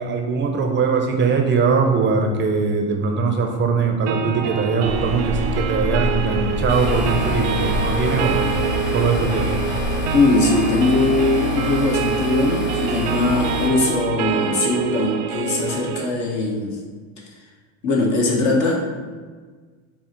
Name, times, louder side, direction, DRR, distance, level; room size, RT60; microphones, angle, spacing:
voice 1, 0.0-8.4 8.9-9.5, right 5 dB, 35° right, 3 dB, 0.6 m, -21 dB
sound 1, 4.1-16.1, right 6 dB, 85° right, 0.5 m, -26 dB
sound 2, 4.8-10.0, left 1 dB, 10° left, 0.9 m, -28 dB
sound 3, 6.7-13.7, left 1 dB, 30° left, 1.1 m, -27 dB
voice 2, 10.1-16.8 17.2-17.3 17.8-19.0, left 2 dB, 50° left, -1 dB, 1.3 m, -20 dB
5.9 x 2.0 x 4.3 m, 1.5 s
hypercardioid pair, 90°, 35 cm